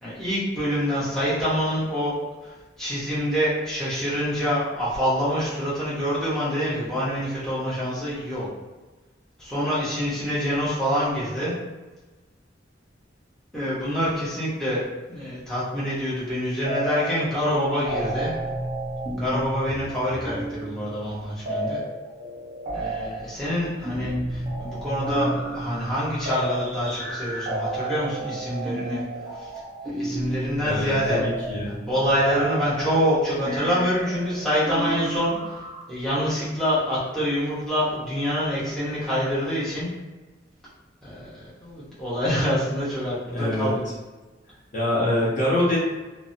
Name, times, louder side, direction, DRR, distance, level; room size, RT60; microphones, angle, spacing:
voice 1, 0.0-2.1 2.4-2.5 2.8-8.5 9.4-11.5 13.5-14.8 15.1-18.3 19.2-21.8 22.7-29.0 29.4-29.5 29.8-31.3 31.9-35.6 35.9-39.9 41.0-43.8, equal, ahead, -11 dB, 0.7 m, -26 dB
sound 1, 16.7-17.3 17.5-35.8, right 1 dB, 35° right, 0.6 m, -31 dB
voice 2, 30.6-31.8 43.3-43.7 44.7-45.8, left 1 dB, 40° left, -7 dB, 0.7 m, -24 dB
2.6 x 2.0 x 2.6 m, 1.2 s
head